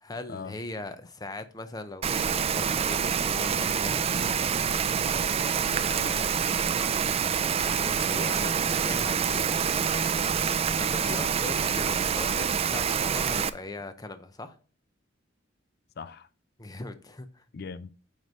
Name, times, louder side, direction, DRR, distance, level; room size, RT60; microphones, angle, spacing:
voice 1, 0.0-4.0 7.8-9.5 10.8-14.6 16.6-17.4, left 2 dB, 20° left, 0.7 m, -40 dB
Rain, 2.0-13.5, right 7 dB, 30° right, 0.3 m, -26 dB
voice 2, 5.5-6.3 11.0-11.3 16.0-16.3 17.5-17.9, left 5 dB, 55° left, 0.4 m, -40 dB
9.2 x 3.2 x 5.4 m
head